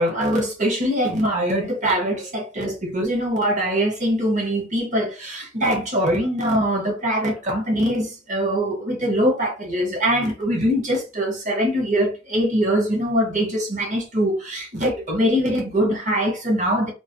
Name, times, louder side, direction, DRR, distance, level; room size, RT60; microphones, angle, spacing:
voice 1, 0.0-16.9, equal, 35° right, 0.8 m, -22 dB
2.4 x 2.3 x 2.5 m
head